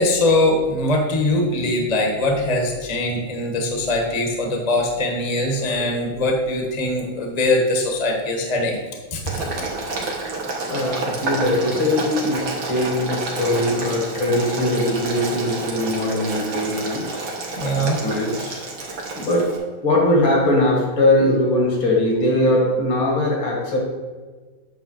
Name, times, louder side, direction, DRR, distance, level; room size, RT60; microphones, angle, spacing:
voice 1, 0.0-8.8 9.1-9.2 10.8-10.9 17.5-18.0, left 1 dB, 25° left, 0 dB, 1.1 m, -21 dB
Boiling, 9.3-19.6, right 3 dB, 70° right, 2.1 m, -29 dB
voice 2, 10.6-17.1 17.7-18.7 19.2-19.5 19.8-23.8, left 1 dB, 70° left, -1 dB, 2.6 m, -21 dB
9.1 x 3.5 x 6.4 m, 1.4 s
omnidirectional pair, 2.2 m